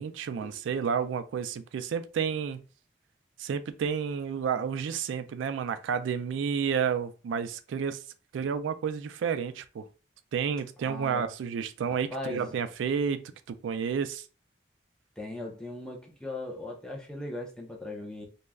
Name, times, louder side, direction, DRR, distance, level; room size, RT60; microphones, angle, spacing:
voice 1, 0.0-2.6 3.4-8.0 8.3-9.9 10.3-14.2, right 7 dB, 90° right, 0.3 m, -31 dB
voice 2, 10.8-11.3 11.9-12.5 15.2-18.3, left 2 dB, 5° left, 0.4 m, -38 dB
2.3 x 2.0 x 3.3 m
head